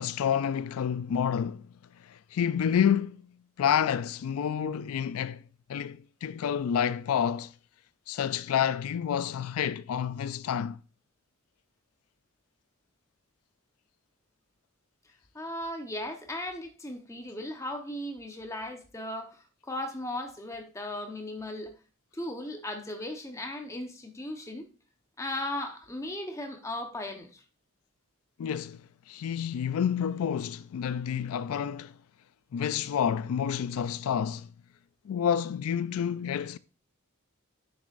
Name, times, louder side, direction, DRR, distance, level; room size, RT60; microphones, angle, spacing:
voice 1, 0.0-1.7 2.0-3.2 3.6-5.4 5.7-7.5 8.1-10.8 28.4-32.0 32.5-34.5 35.0-36.6, left 8 dB, 85° left, 0.3 m, -29 dB
voice 2, 15.3-21.7 22.1-24.7 25.2-27.4, left 1 dB, 15° left, 1.0 m, -37 dB
9.6 x 6.9 x 2.5 m
head